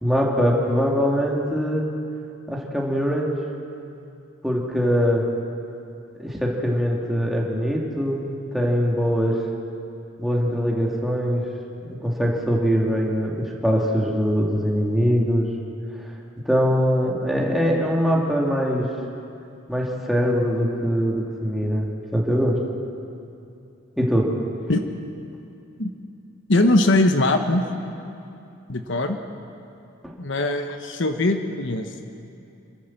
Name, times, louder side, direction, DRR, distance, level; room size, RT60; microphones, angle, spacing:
voice 1, 0.0-1.9 2.5-3.3 4.4-5.2 6.2-9.4 10.2-11.4 11.8-15.5 16.4-18.9 19.7-22.6 24.0-24.3 30.0-30.1, equal, ahead, -3 dB, 2.5 m, -22 dB
voice 2, 26.5-27.6 28.7-29.2 30.2-31.9, left 2 dB, 65° left, 6 dB, 1.1 m, -21 dB
27.0 x 13.0 x 7.4 m, 2.7 s
head